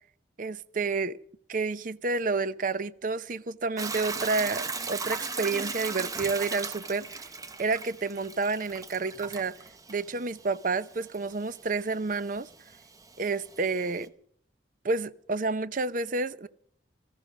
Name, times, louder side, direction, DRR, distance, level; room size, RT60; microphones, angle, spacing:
voice 1, 0.4-1.2 1.5-7.3 7.6-9.6 9.9-12.5 13.2-14.1 14.8-16.5, right 3 dB, 45° right, 0.6 m, -30 dB
Hiss / Toilet flush / Trickle dribble, 3.8-14.1, right 4 dB, 20° right, 0.8 m, -38 dB
19.0 x 14.0 x 5.2 m
head